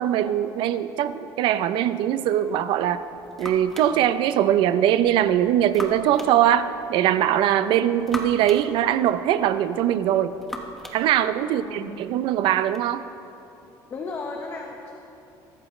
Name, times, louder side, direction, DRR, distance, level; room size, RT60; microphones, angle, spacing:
voice 1, 0.0-3.0 3.4-10.3 10.9-13.0, right 11 dB, 65° right, 12 dB, 0.6 m, -21 dB
sound 1, 2.7-12.9, equal, 5° left, 1.2 m, -41 dB
voice 2, 11.5-12.1 13.9-14.9, left 3 dB, 30° left, 1 dB, 1.1 m, -35 dB
22.0 x 14.0 x 3.3 m, 2.8 s
cardioid pair, 150°, 9 cm